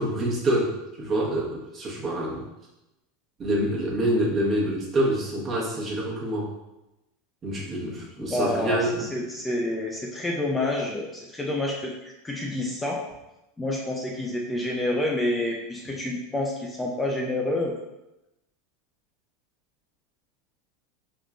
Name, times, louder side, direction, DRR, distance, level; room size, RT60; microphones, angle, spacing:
voice 1, 0.0-2.4 3.4-6.5 7.4-9.0, right 1 dB, 30° right, -4 dB, 1.1 m, -26 dB
voice 2, 8.2-11.9 12.2-13.0 13.6-17.7, left 1 dB, 10° left, -2 dB, 0.5 m, -28 dB
3.6 x 3.1 x 2.4 m, 0.94 s
supercardioid pair, 115°, 0 cm